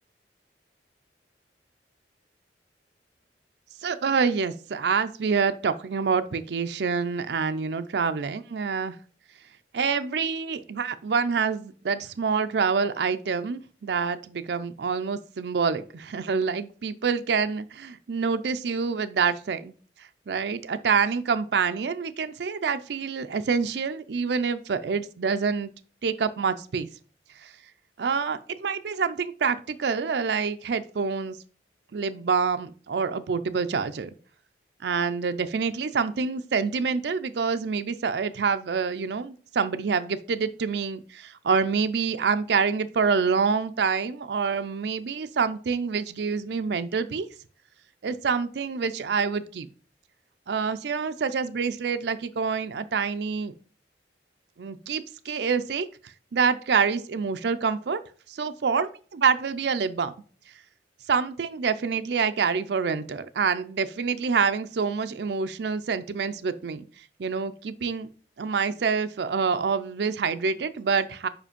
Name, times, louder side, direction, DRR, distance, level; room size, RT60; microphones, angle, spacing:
voice 1, 3.8-9.0 9.7-19.7 20.3-25.7 26.0-26.9 27.4-27.5 28.0-31.4 31.9-34.1 34.8-47.3 48.0-49.7 50.5-53.5 54.6-55.9 56.3-58.0 58.3-60.1 61.1-66.8 67.2-68.1 68.4-71.3, right 5 dB, 70° right, 11 dB, 0.5 m, -26 dB
5.1 x 5.0 x 5.1 m, 0.41 s
head